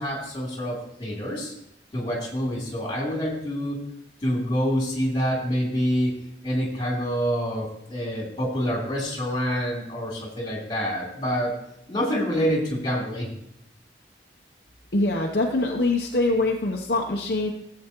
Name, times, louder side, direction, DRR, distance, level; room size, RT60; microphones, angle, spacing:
voice 1, 0.0-1.5 1.9-3.8 4.2-6.1 6.4-11.6 11.9-13.3, equal, 25° left, -3 dB, 3.1 m, -27 dB
voice 2, 14.9-17.5, left 2 dB, 55° left, 0 dB, 0.8 m, -24 dB
15.5 x 7.7 x 3.0 m, 0.77 s
head